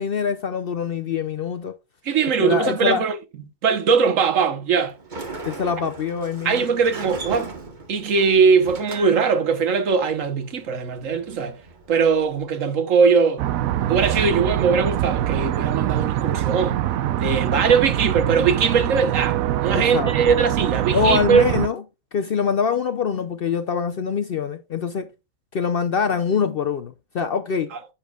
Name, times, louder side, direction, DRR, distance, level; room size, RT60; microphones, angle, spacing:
voice 1, 0.0-1.8 2.4-3.0 5.4-6.6 19.7-20.1 20.9-21.8 22.1-25.1 25.5-27.7, left 6 dB, 55° left, 0.7 m, -24 dB
voice 2, 2.0-3.2 3.6-4.9 6.4-7.5 7.9-11.6 11.9-13.4 13.9-16.8 17.1-21.4 27.7-27.8, right 5 dB, 70° right, 1.4 m, -20 dB
Sliding door, 4.9-12.4, right 3 dB, 35° right, 1.3 m, -38 dB
sound 1, 13.4-21.7, right 12 dB, 85° right, 1.0 m, -24 dB
10.0 x 7.2 x 2.3 m
omnidirectional pair, 1.4 m